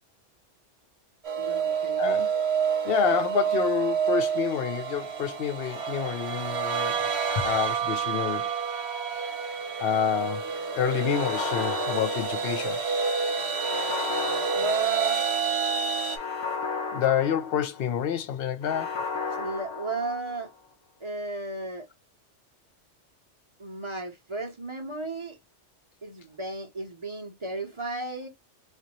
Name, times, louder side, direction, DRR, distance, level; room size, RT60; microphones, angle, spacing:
sound 1, 1.2-16.2, right 6 dB, 60° right, 1.2 m, -28 dB
voice 1, 1.4-2.1 14.5-15.2 19.4-20.5 21.0-21.9 23.6-25.4 26.0-28.3, right 3 dB, 30° right, 0.7 m, -33 dB
voice 2, 2.0-2.3 2.8-7.0 7.4-8.5 9.8-10.5 10.7-12.8 16.9-19.0, left 9 dB, 65° left, 0.7 m, -28 dB
sound 2, 11.0-12.9 13.6-15.4 16.1-18.0 18.6-20.5, left 5 dB, 85° left, 1.3 m, -34 dB
4.2 x 2.5 x 2.9 m
omnidirectional pair, 1.2 m